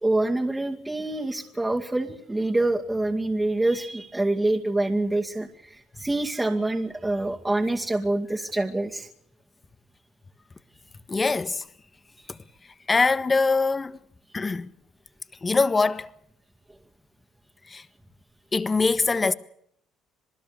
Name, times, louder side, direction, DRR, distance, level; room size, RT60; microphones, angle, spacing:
voice 1, 0.0-9.1, right 2 dB, 10° right, 2.3 m, -26 dB
voice 2, 11.1-11.7 12.3-12.4 12.9-14.0 14.3-14.7 15.4-16.1 17.7-17.9 18.5-19.3, left 4 dB, 25° left, 1.5 m, -23 dB
27.5 x 19.5 x 6.9 m
cardioid pair, 100°, 0 cm